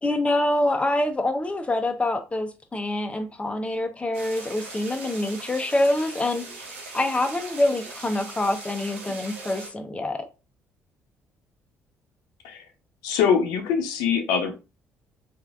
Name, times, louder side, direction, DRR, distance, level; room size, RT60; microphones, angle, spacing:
voice 1, 0.0-6.4 6.9-10.2, left 1 dB, 20° left, 0.6 m, -25 dB
sound 1, 4.1-9.7, right 3 dB, 85° right, 0.7 m, -40 dB
voice 2, 13.0-14.5, left 7 dB, 75° left, 0.5 m, -23 dB
3.1 x 2.5 x 2.4 m
hypercardioid pair, 50°, 7 cm